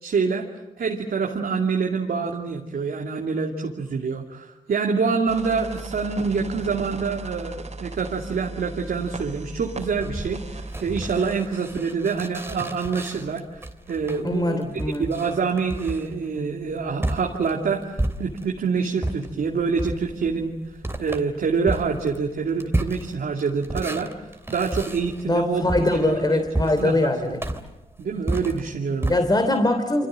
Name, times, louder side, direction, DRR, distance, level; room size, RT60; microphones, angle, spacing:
voice 1, 0.0-0.5 0.8-13.4 13.9-20.6 21.0-24.1 24.5-25.6 26.0-27.3 28.0-29.2, right 5 dB, 70° right, 1 dB, 2.6 m, -26 dB
sound 1, 5.3-11.2, right 2 dB, 45° right, 4.1 m, -37 dB
sound 2, 9.9-18.6 19.0-29.2, right 1 dB, 15° right, 3.1 m, -32 dB
voice 2, 14.2-15.1 25.2-27.6 29.1-30.1, left 2 dB, 25° left, 7 dB, 3.1 m, -22 dB
29.0 x 25.0 x 7.6 m, 0.98 s
cardioid pair, 55°, 16 cm